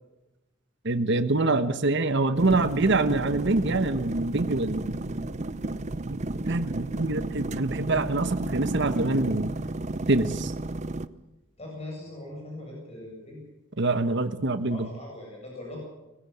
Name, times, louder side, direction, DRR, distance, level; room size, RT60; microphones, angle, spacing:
voice 1, 0.8-5.0 6.1-6.2 6.5-9.5 10.1-10.5 13.8-14.9, right 2 dB, 60° right, 10 dB, 1.2 m, -25 dB
sound 1, 2.4-11.1, right 2 dB, 35° right, 0.6 m, -32 dB
voice 2, 6.8-7.1 11.6-13.4 14.7-15.8, left 1 dB, 30° left, -1 dB, 7.8 m, -41 dB
21.0 x 16.0 x 8.7 m, 1.0 s
head